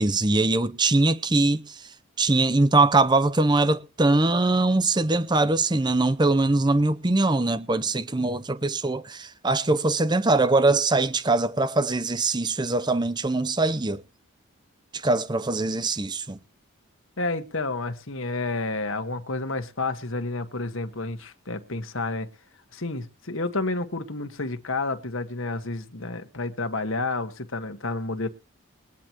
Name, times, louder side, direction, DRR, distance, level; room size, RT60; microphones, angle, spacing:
voice 1, 0.0-1.8 2.2-14.0 14.9-16.4, right 2 dB, 20° right, 0.7 m, -22 dB
voice 2, 17.2-22.3 22.7-28.3, left 3 dB, 65° left, 1.6 m, -30 dB
21.5 x 9.9 x 3.0 m
head